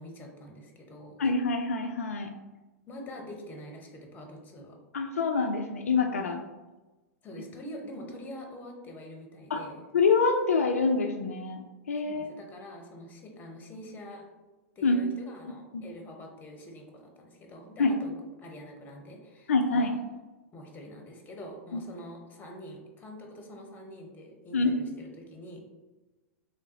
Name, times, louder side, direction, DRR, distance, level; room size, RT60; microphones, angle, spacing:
voice 1, 0.0-1.2 2.9-4.8 7.2-9.8 12.0-14.2 14.8-19.9 20.5-25.6, equal, 25° left, 2 dB, 0.9 m, -45 dB
voice 2, 1.2-2.3 4.9-6.4 9.5-9.6 9.9-12.3 14.8-15.0 15.7-15.8 17.8-17.9 19.5-19.9 21.7-21.8 24.5-24.7, left 4 dB, 75° left, 4 dB, 0.3 m, -26 dB
3.7 x 3.2 x 2.8 m, 1.1 s
hypercardioid pair, 100°, 8 cm